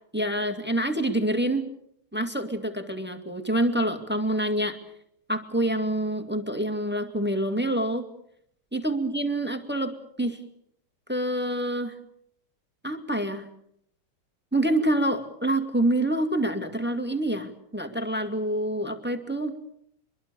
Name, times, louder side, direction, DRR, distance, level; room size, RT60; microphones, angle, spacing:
voice 1, 0.1-1.7 2.1-4.8 5.3-8.1 8.7-9.9 10.2-10.4 11.1-11.9 12.8-13.5 14.5-19.5, right 1 dB, 5° right, 6 dB, 1.9 m, -26 dB
25.5 x 22.5 x 7.0 m, 0.73 s
omnidirectional pair, 2.4 m